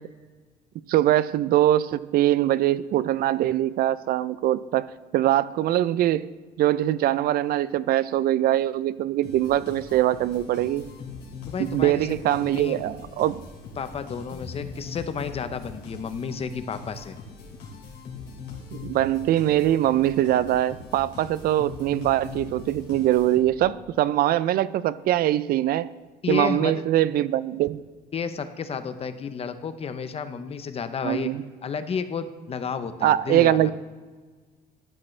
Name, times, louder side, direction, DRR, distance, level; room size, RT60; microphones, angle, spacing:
voice 1, 0.9-4.9 5.1-6.3 6.6-10.8 11.6-13.4 18.7-25.9 26.3-27.8 31.0-31.4 33.0-33.7, right 13 dB, 60° right, 17 dB, 0.4 m, -22 dB
sound 1, 9.2-23.8, left 4 dB, 80° left, 2.8 m, -41 dB
voice 2, 11.5-12.8 13.8-17.2 26.2-26.8 28.1-31.3 31.6-33.7, left 6 dB, 35° left, 11 dB, 0.7 m, -31 dB
12.0 x 8.7 x 3.2 m, 1.4 s
cardioid pair, 110°, 17 cm